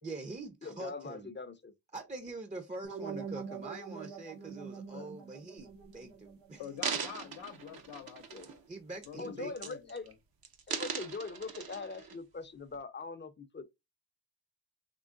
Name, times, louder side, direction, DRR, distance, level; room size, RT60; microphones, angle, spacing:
voice 1, 0.0-1.3 1.9-6.6 8.7-9.5, right 3 dB, 15° right, 0.6 m, -44 dB
voice 2, 0.6-1.7 4.9-5.1 8.3-8.5 9.2-10.1 10.7-13.7, left 4 dB, 25° left, 0.6 m, -42 dB
sound 1, 2.8-7.8, right 5 dB, 85° right, 1.6 m, -45 dB
sound 2, 5.6-5.9 6.6-8.7 9.0-9.3 9.6-10.1 10.4-12.2 12.7-12.8, right 6 dB, 55° right, 0.8 m, -39 dB
voice 3, 6.6-8.6 9.1-10.1, left 9 dB, 80° left, 0.8 m, -46 dB
3.8 x 3.0 x 2.5 m
cardioid pair, 55°, 42 cm